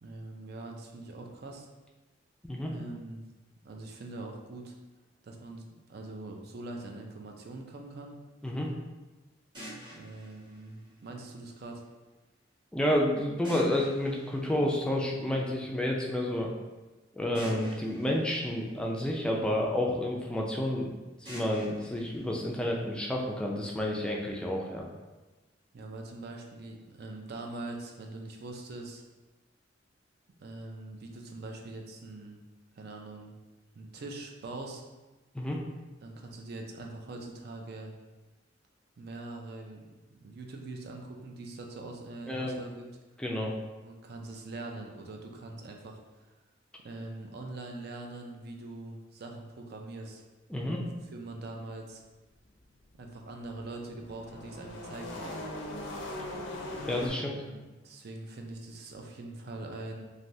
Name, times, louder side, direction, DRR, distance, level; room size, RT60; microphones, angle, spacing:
voice 1, 0.0-1.7 2.6-3.2 3.6-4.7 5.2-8.2 9.9-11.8 25.7-29.0 30.4-32.4 32.7-33.3 33.7-34.8 36.0-37.9 39.0-42.8 43.8-46.3 46.8-50.2 50.5-50.8 51.1-52.0 53.0-55.4 57.2-60.0, right 2 dB, 55° right, 2 dB, 0.4 m, -43 dB
sound 1, 9.5-11.6 13.4-15.4 17.3-19.6 21.2-23.3, right 1 dB, 25° right, 1.0 m, -48 dB
voice 2, 12.7-16.5 17.1-24.9 35.3-35.6 42.3-42.6 43.2-43.5 50.5-50.8 56.9-57.4, left 1 dB, 5° left, -2 dB, 0.3 m, -30 dB
sound 2, 53.2-57.1, left 1 dB, 90° left, 0.5 m, -40 dB
3.3 x 2.6 x 2.6 m, 1.2 s
head